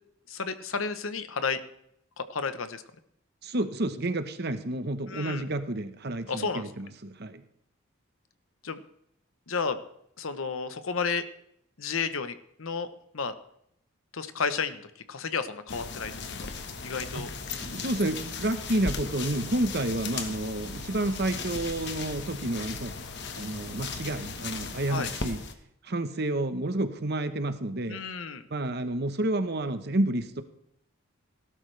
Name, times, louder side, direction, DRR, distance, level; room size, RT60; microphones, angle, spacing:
voice 1, 0.3-1.6 2.2-2.8 5.1-5.4 6.3-6.6 8.6-8.8 9.5-9.8 10.2-11.2 11.8-12.9 13.1-13.3 14.1-16.5 16.8-17.3 24.9-25.1 27.9-28.4, left 5 dB, 75° left, 11 dB, 1.0 m, -32 dB
voice 2, 3.4-7.4 17.1-17.3 17.6-23.0 23.4-25.4 25.8-28.0 28.5-30.4, right 1 dB, 50° right, 10 dB, 1.0 m, -30 dB
sound 1, 15.7-25.5, left 4 dB, 55° left, 1.3 m, -37 dB
18.5 x 12.0 x 3.4 m, 0.73 s
head